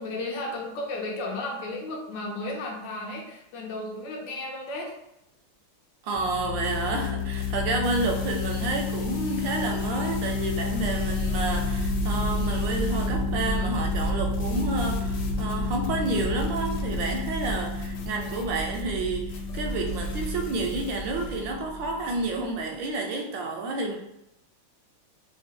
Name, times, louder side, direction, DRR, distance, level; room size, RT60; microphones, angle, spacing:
voice 1, 0.0-4.9, left 2 dB, 70° left, 0 dB, 1.2 m, -34 dB
voice 2, 6.0-24.0, right 3 dB, 75° right, 2 dB, 1.1 m, -30 dB
sound 1, 6.1-22.4, left 3 dB, 35° left, 1.0 m, -30 dB
sound 2, 6.6-21.5, left 4 dB, 90° left, 1.5 m, -47 dB
sound 3, 8.8-12.6, equal, 40° right, 0.5 m, -49 dB
3.4 x 2.1 x 3.5 m, 0.83 s
omnidirectional pair, 2.3 m